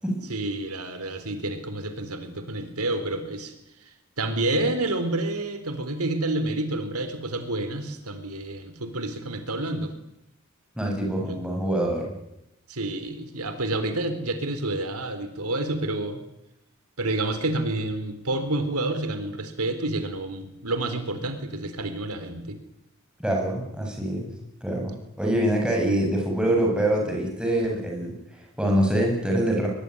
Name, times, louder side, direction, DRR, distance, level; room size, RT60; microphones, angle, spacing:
voice 1, 0.3-3.5 3.8-9.9 11.2-11.4 12.7-16.2 17.0-22.6, right 2 dB, 90° right, 9 dB, 3.8 m, -29 dB
voice 2, 10.8-12.1 23.2-24.3 24.6-29.7, right 1 dB, 5° right, 0 dB, 7.8 m, -25 dB
23.0 x 22.5 x 9.9 m, 0.84 s
head